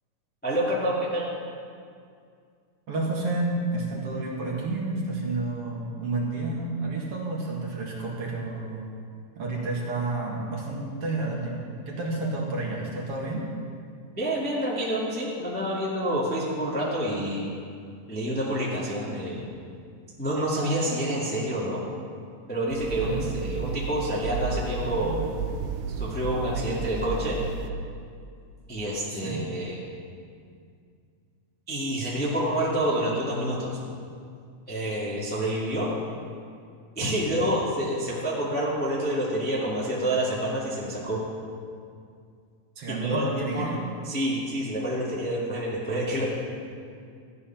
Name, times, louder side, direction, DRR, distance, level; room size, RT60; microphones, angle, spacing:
voice 1, 0.4-1.3 14.2-17.5 18.1-19.5 20.2-21.8 22.5-25.2 25.9-27.4 28.7-29.8 31.7-33.7 34.7-35.9 36.9-41.2 42.9-43.6 44.0-46.3, right 1 dB, 5° left, -6 dB, 1.3 m, -28 dB
voice 2, 2.9-8.9 9.4-13.4 23.0-23.3 29.1-29.4 42.8-43.8, right 2 dB, 50° right, -2 dB, 2.5 m, -30 dB
sound 1, 22.7-27.7, right 6 dB, 85° right, 2.2 m, -32 dB
14.5 x 9.7 x 5.8 m, 2.3 s
omnidirectional pair, 3.8 m